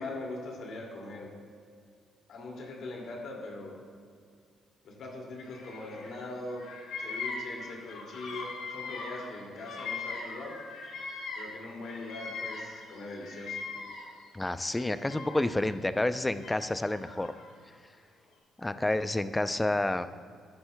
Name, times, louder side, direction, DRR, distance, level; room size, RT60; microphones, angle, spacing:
voice 1, 0.0-1.3 2.3-3.8 4.8-6.7 7.0-10.6 11.4-13.6, left 2 dB, 70° left, -1 dB, 2.3 m, -41 dB
Bird vocalization bird call bird song, 5.5-6.2 6.5-11.6 11.8-14.2 14.7-15.7 16.4-17.5, left 4 dB, 85° left, 2.1 m, -40 dB
voice 2, 14.3-17.3 18.6-20.1, left 1 dB, 15° left, 12 dB, 0.4 m, -29 dB
13.5 x 10.5 x 2.2 m, 2.1 s
cardioid pair, 90°, 0 cm